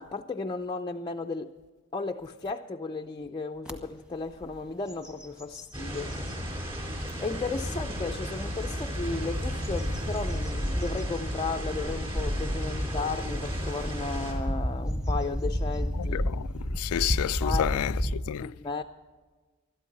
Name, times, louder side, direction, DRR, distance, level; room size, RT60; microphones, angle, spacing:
voice 1, 0.0-1.5 1.9-6.3 7.2-16.5 17.4-17.8 18.3-18.8, left 3 dB, 20° left, 0.5 m, -34 dB
sound 1, 3.7-3.8 4.3-4.5 4.9-6.4 7.0-7.1 8.8-18.1, equal, 5° right, 1.3 m, -32 dB
sound 2, 5.7-14.3, equal, 25° right, 4.5 m, -34 dB
voice 2, 16.0-18.5, left 10 dB, 85° left, 0.3 m, -31 dB
21.0 x 13.0 x 4.1 m
head